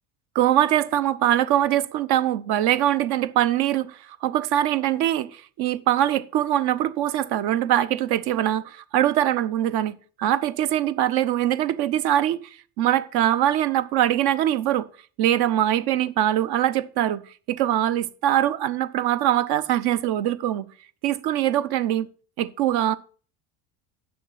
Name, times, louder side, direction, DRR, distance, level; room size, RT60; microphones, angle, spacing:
voice 1, 0.3-12.4 12.8-14.9 15.2-17.2 17.5-20.7 21.0-22.1 22.4-23.0, right 12 dB, 70° right, 0.8 m, -22 dB
8.6 x 6.4 x 5.8 m
supercardioid pair, 100°, 39 cm